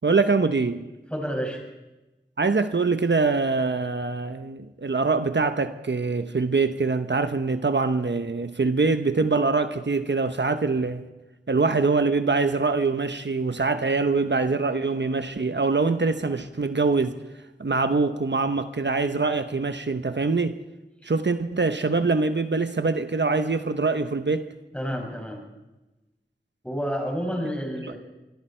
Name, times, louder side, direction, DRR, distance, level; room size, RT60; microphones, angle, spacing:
voice 1, 0.0-0.9 2.4-11.0 11.5-17.1 17.6-20.6 21.0-24.5, right 4 dB, 70° right, 1.0 m, -24 dB
voice 2, 1.1-1.6 21.0-21.1 24.7-25.4 26.6-28.0, equal, 5° left, 6.5 m, -29 dB
26.0 x 22.5 x 4.5 m
wide cardioid pair, 50°, 19 cm